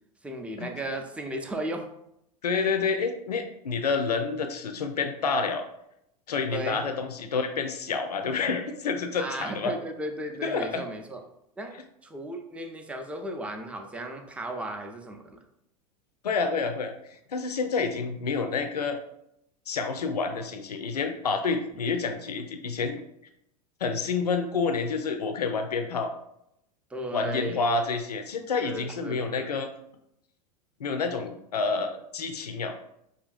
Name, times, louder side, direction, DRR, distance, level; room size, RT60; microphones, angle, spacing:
voice 1, 0.2-1.9 6.5-6.9 9.2-11.2 11.6-11.7 12.0-15.4 22.0-22.1 26.9-27.7 28.6-29.5, right 1 dB, 5° right, 4 dB, 0.5 m, -35 dB
voice 2, 2.4-5.6 6.3-9.7 10.4-10.8 16.2-19.0 19.7-23.0 23.8-26.1 27.1-29.7 30.8-32.8, left 4 dB, 80° left, 6 dB, 0.4 m, -28 dB
5.0 x 2.6 x 2.4 m, 0.78 s
figure-of-eight pair, 85°, 20 cm